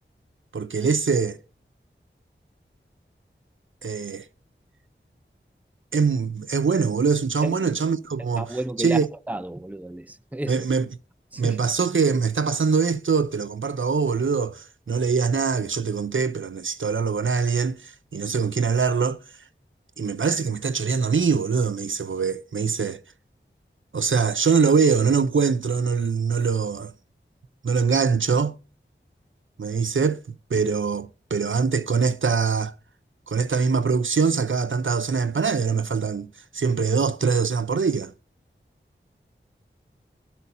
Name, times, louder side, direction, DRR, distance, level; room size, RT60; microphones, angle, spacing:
voice 1, 0.5-1.4 3.8-4.2 5.9-9.1 10.5-10.9 11.4-19.2 20.0-23.0 23.9-26.9 27.6-28.6 29.6-30.2 30.5-32.7 33.3-36.3 36.5-38.1, right 5 dB, 70° right, 0.6 m, -23 dB
voice 2, 8.4-9.0 9.3-10.7 11.3-11.6, right 1 dB, 5° right, 0.6 m, -32 dB
21.5 x 8.3 x 2.6 m
wide cardioid pair, 45°, 21 cm